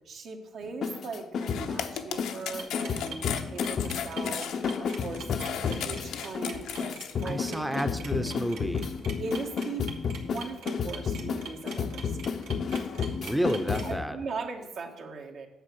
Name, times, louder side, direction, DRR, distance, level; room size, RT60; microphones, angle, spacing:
voice 1, 0.1-7.9 8.2-8.4 9.2-12.4 12.7-13.3 13.8-15.5, right 4 dB, 65° right, 3 dB, 1.6 m, -39 dB
sound 1, 0.6-14.1, left 6 dB, 60° left, 0.6 m, -32 dB
sound 2, 1.4-7.1, left 9 dB, 90° left, 0.8 m, -36 dB
sound 3, 2.6-13.8, right 5 dB, 90° right, 1.5 m, -44 dB
voice 2, 7.2-8.9 12.9-14.2, equal, 5° right, 7 dB, 0.7 m, -31 dB
9.0 x 7.2 x 6.2 m, 1.0 s
cardioid pair, 90°, 0 cm